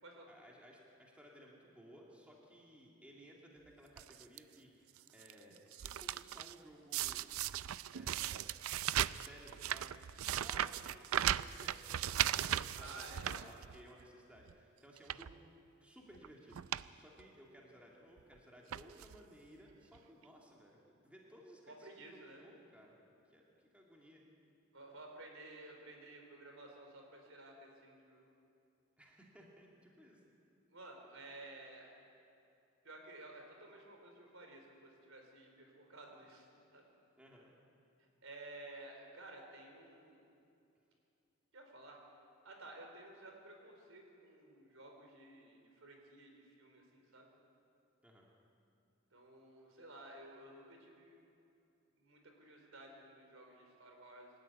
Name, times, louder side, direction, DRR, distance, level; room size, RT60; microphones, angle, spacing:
voice 1, 0.3-7.6 7.9-9.9 10.2-15.4 15.8-16.6 17.0-23.0 23.3-24.2 29.0-30.2 37.2-37.5 48.0-48.3, equal, 5° right, -2 dB, 2.5 m, -59 dB
sound 1, 4.0-4.4 5.0-5.3 5.6-6.5 6.9-14.0 14.4-14.5 15.0-15.3 16.2-16.3 16.5-16.9 17.2-17.3 18.2-18.3 18.7-19.2 20.0-20.1 20.2-20.3, right 11 dB, 90° right, 0.4 m, -37 dB
voice 2, 12.8-13.4 21.7-22.4 24.7-28.2 30.7-31.9 32.8-36.8 38.0-40.2 41.5-42.0 42.4-47.3 49.1-51.2 52.0-54.3, right 2 dB, 75° right, 2 dB, 4.3 m, -54 dB
24.5 x 13.0 x 9.6 m, 2.6 s
head